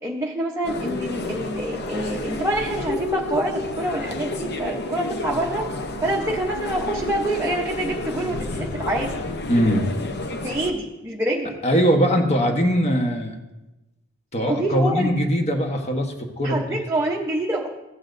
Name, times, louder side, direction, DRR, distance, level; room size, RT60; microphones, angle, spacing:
voice 1, 0.0-5.7 6.0-9.2 10.4-11.6 14.4-15.1 16.4-17.7, right 1 dB, 10° right, -3 dB, 0.8 m, -26 dB
sound 1, 0.6-10.7, left 2 dB, 50° left, 0.7 m, -30 dB
voice 2, 9.5-9.9 11.6-13.4 14.3-16.6, equal, 30° left, 3 dB, 1.1 m, -21 dB
15.5 x 8.6 x 2.6 m, 1.0 s
head